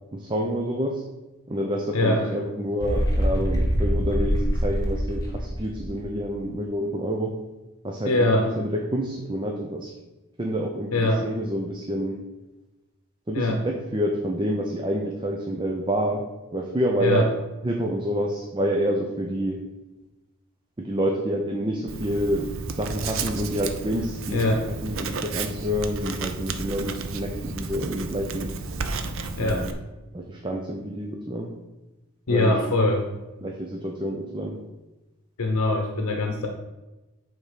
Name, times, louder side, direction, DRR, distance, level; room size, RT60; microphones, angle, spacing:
voice 1, 0.1-1.0 1.5-7.4 7.8-9.9 10.4-12.2 13.3-17.3 17.6-19.6 20.8-28.5 29.4-29.7 30.1-31.5 32.3-32.6 33.4-34.6, equal, 20° right, 1 dB, 0.6 m, -28 dB
voice 2, 1.9-2.3 8.0-8.5 10.9-11.3 13.3-13.6 17.0-17.3 24.3-24.6 29.4-29.7 32.3-33.1 35.4-36.5, left 2 dB, 85° left, 3 dB, 0.9 m, -22 dB
sound 1, 2.8-6.4, equal, 15° left, 1.2 m, -25 dB
Writing, 21.9-29.7, right 4 dB, 60° right, 0.6 m, -32 dB
8.3 x 3.6 x 5.6 m, 1.1 s
head